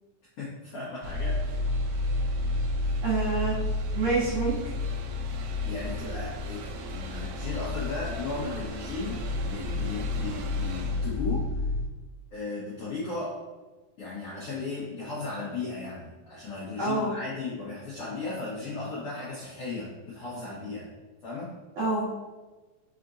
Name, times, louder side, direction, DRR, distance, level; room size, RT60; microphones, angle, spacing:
voice 1, 0.4-1.6 5.6-11.5 12.3-13.4 14.0-20.9 21.2-21.5, left 3 dB, 75° left, -8 dB, 1.3 m, -36 dB
sound 1, 1.0-11.9, left 2 dB, 85° right, 1.7 m, -31 dB
voice 2, 3.0-3.6 3.9-4.8 16.8-17.1 21.8-22.1, right 3 dB, 65° right, -8 dB, 1.9 m, -27 dB
5.1 x 3.8 x 2.5 m, 1.2 s
omnidirectional pair, 4.0 m